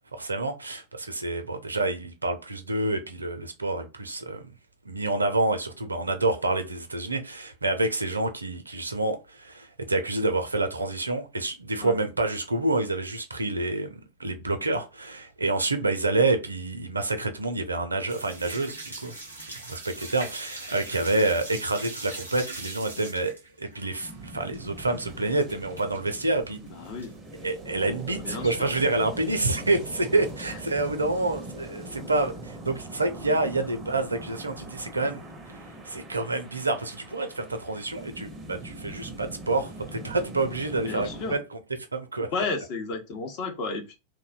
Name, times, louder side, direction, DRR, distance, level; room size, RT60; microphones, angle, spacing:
voice 1, 0.1-4.5 4.9-19.1 19.7-26.6 27.4-35.2 35.8-41.6 41.9-42.3, right 2 dB, 80° right, 0.4 m, -28 dB
sound 1, 18.1-26.1 26.4-27.2 27.5-27.6 28.0-28.1 28.3-28.5 29.3-29.8 30.2-30.9, right 2 dB, 85° left, 0.9 m, -41 dB
sound 2, 24.0-41.4, right 2 dB, 20° right, 0.5 m, -42 dB
voice 2, 26.6-27.1 28.2-28.7 40.7-41.4 42.3-43.9, left 3 dB, 45° left, 0.7 m, -32 dB
2.6 x 2.0 x 2.4 m
figure-of-eight pair, 90°, 0 cm